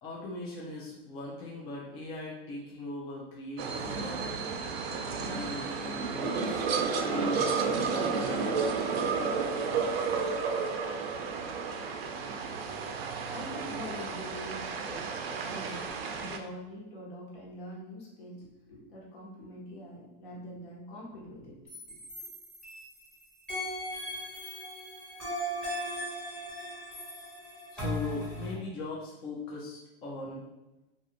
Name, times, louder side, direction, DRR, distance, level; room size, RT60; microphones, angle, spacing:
voice 1, 0.0-4.3 5.3-6.7 7.0-8.6 27.7-30.5, left 2 dB, 20° left, -4 dB, 0.4 m, -39 dB
sound 1, 3.6-16.4, right 5 dB, 80° right, 0.5 m, -32 dB
voice 2, 13.3-15.2 15.4-21.6 21.9-22.0, equal, 60° left, -3 dB, 1.1 m, -44 dB
sound 2, 21.7-23.1 23.5-28.5, equal, 5° left, 0.9 m, -38 dB
2.5 x 2.4 x 2.8 m, 1.0 s
supercardioid pair, 140°, 30 cm